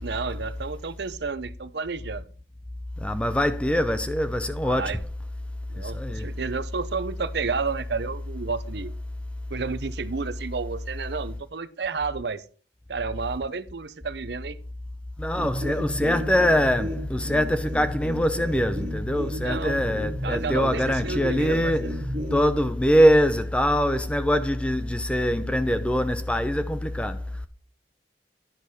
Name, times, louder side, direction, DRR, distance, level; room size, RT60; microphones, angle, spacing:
voice 1, 0.0-2.2 4.6-5.0 5.7-8.9 9.5-12.4 12.9-14.6 19.4-19.8 20.2-21.9, right 4 dB, 65° right, 0.6 m, -31 dB
voice 2, 3.0-4.9 5.8-6.3 15.2-21.9 22.3-27.2, equal, 5° left, 0.5 m, -23 dB
sound 1, 15.4-22.6, equal, 40° right, 1.4 m, -34 dB
10.5 x 6.5 x 4.1 m
head